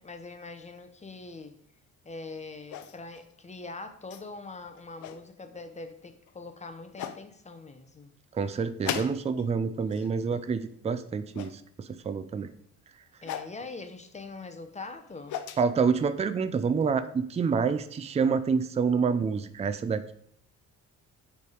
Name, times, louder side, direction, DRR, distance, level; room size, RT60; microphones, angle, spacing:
voice 1, 0.0-1.6 2.0-8.1 13.2-15.4, left 3 dB, 25° left, 8 dB, 0.7 m, -43 dB
sound 1, 2.7-3.2 4.1-4.2 4.8-5.2 6.3-6.4 7.0-7.2 8.8-9.5 9.8-10.2 11.3-11.6 13.2-13.5 14.9-15.6, left 10 dB, 75° left, 0.5 m, -37 dB
voice 2, 8.3-12.5 15.6-20.1, right 5 dB, 20° right, 12 dB, 0.4 m, -27 dB
6.9 x 3.4 x 4.9 m, 0.65 s
cardioid pair, 90°, 30 cm